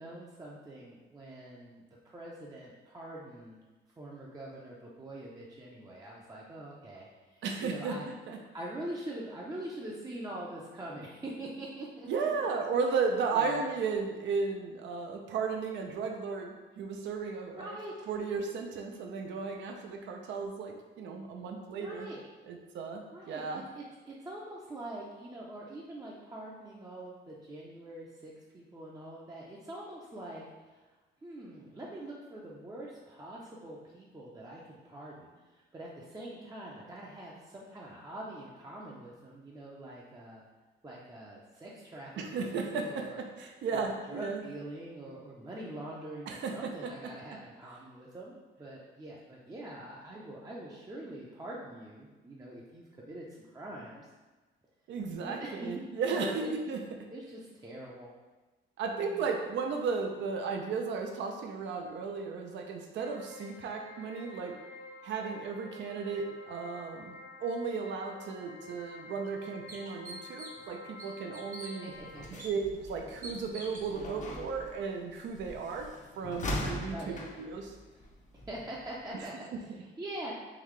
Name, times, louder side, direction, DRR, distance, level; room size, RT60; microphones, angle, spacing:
voice 1, 0.0-3.6 4.0-8.1 8.5-12.1 13.3-13.7 17.5-17.9 21.8-22.2 23.1-23.5 23.8-30.8 31.2-40.4 40.8-43.2 43.7-54.1 55.2-55.7 56.0-56.5 57.1-58.1 58.9-59.3 71.8-72.4 76.9-77.3 78.5-80.3, right 1 dB, 20° right, -4 dB, 0.5 m, -44 dB
voice 2, 7.4-8.0 8.3-8.4 12.1-17.8 18.1-22.1 22.5-23.6 42.2-44.4 46.3-46.9 54.9-56.8 58.8-64.6 65.0-67.2 67.4-71.9 72.4-77.7 79.5-79.6, right 5 dB, 70° right, 3 dB, 0.5 m, -35 dB
sound 1, 63.0-72.2, left 2 dB, 90° left, 0.6 m, -49 dB
sound 2, 68.6-68.7 69.2-69.3 69.7-70.7 71.0-71.7 72.4-72.5 73.2-73.9, right 2 dB, 45° right, 0.8 m, -45 dB
sound 3, 71.9-79.2, left 1 dB, 40° left, 0.6 m, -42 dB
3.9 x 2.7 x 3.1 m, 1.2 s
cardioid pair, 90°, 20 cm